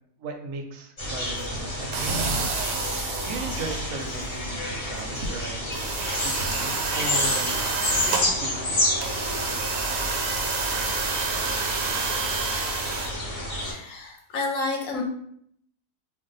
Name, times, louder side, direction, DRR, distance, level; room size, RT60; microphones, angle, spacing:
voice 1, 0.2-2.4 2.9-5.8 6.2-7.6 7.9-9.3, right 3 dB, 70° right, 3 dB, 0.8 m, -37 dB
sound 1, 1.0-13.7, left 1 dB, 40° left, 0.5 m, -30 dB
sound 2, 1.9-4.1 4.9-5.0 5.3-5.4 5.7-8.3 9.0-13.1, right 4 dB, 90° right, 1.1 m, -29 dB
voice 2, 13.6-15.0, left 3 dB, 70° left, 1 dB, 0.9 m, -30 dB
2.6 x 2.1 x 3.9 m, 0.69 s
omnidirectional pair, 1.6 m